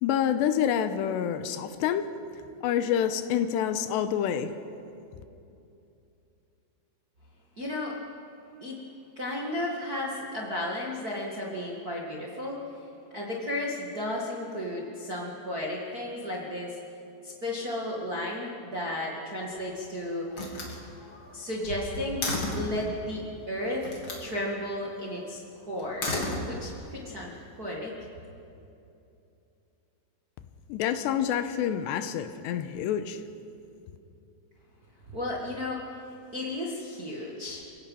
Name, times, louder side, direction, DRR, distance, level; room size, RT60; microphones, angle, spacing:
voice 1, 0.0-2.1 2.6-4.5 30.7-33.2, left 9 dB, 85° left, 10 dB, 2.9 m, -27 dB
voice 2, 7.6-8.0 8.6-8.8 9.1-12.7 13.1-16.8 17.2-20.3 21.3-22.2 22.5-23.9 24.2-25.4 25.7-26.1 26.4-27.3 27.6-27.9 35.1-35.9 36.3-37.6, left 1 dB, 35° right, -3 dB, 1.4 m, -33 dB
Slam, 19.2-19.8 20.3-22.8 23.8-24.3 25.8-26.9, left 2 dB, 35° left, 3.1 m, -34 dB
29.0 x 17.0 x 5.6 m, 2.7 s
omnidirectional pair, 5.0 m